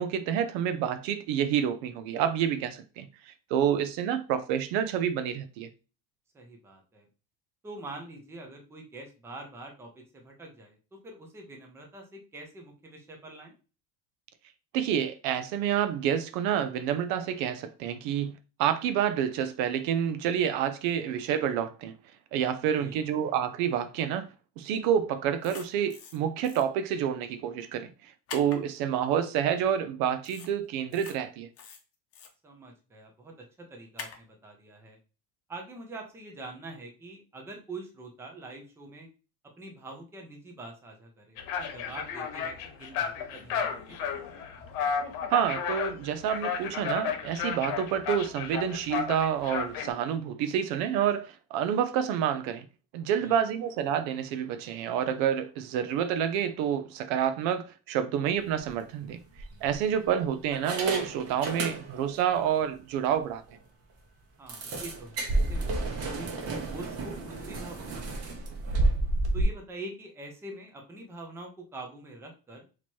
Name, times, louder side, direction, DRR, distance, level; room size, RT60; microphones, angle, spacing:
voice 1, 0.0-5.7 14.7-21.9 22.3-24.3 24.6-31.5 45.3-52.6 52.9-59.2 59.6-63.4, right 9 dB, 60° right, 0.5 m, -28 dB
voice 2, 6.3-7.0 7.6-13.5 22.8-23.0 32.4-33.3 33.7-35.0 35.5-39.1 39.6-42.5 42.8-44.0 53.2-53.3 64.4-66.3 66.7-68.9 69.3-72.6, right 2 dB, 5° right, 0.5 m, -45 dB
sound 1, 25.4-26.2 26.4-26.6 28.3-28.6 30.2-30.5 30.9-31.1 31.6-32.3 34.0-34.2, left 6 dB, 35° left, 0.8 m, -43 dB
sound 2, 41.4-49.9, left 7 dB, 80° left, 1.1 m, -33 dB
sound 3, 58.5-58.7 59.4-60.0 60.5-62.2 62.5-62.6 63.0-63.1 63.5-63.6 64.5-69.4, right 2 dB, 35° right, 0.8 m, -31 dB
2.9 x 2.9 x 4.4 m
cardioid pair, 165°, 43 cm